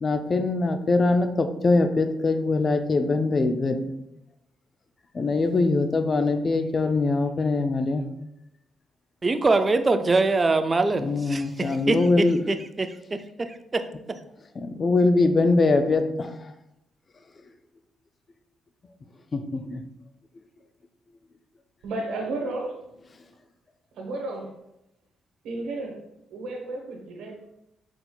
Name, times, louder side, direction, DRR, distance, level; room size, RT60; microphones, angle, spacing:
voice 1, 0.0-3.8 5.1-8.0 10.9-12.4 14.6-16.3 19.3-19.8, left 3 dB, 35° left, 8 dB, 0.4 m, -22 dB
voice 2, 9.2-13.8, right 3 dB, 30° right, 9 dB, 0.3 m, -24 dB
voice 3, 21.8-22.7 23.9-24.5 25.4-26.0 26.3-27.4, right 2 dB, 85° right, 1 dB, 1.0 m, -32 dB
4.3 x 3.9 x 2.3 m, 0.86 s
cardioid pair, 90°, 0 cm